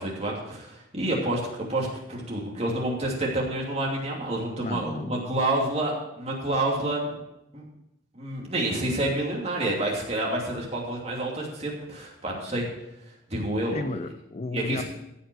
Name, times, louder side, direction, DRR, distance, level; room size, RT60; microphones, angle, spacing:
voice 1, 0.0-7.2 7.5-7.6 8.1-12.7 13.3-13.8 14.5-14.8, right 1 dB, 35° right, -2 dB, 2.7 m, -28 dB
voice 2, 4.6-5.4 13.7-14.8, left 2 dB, 35° left, 9 dB, 0.5 m, -33 dB
14.5 x 5.7 x 6.2 m, 0.87 s
head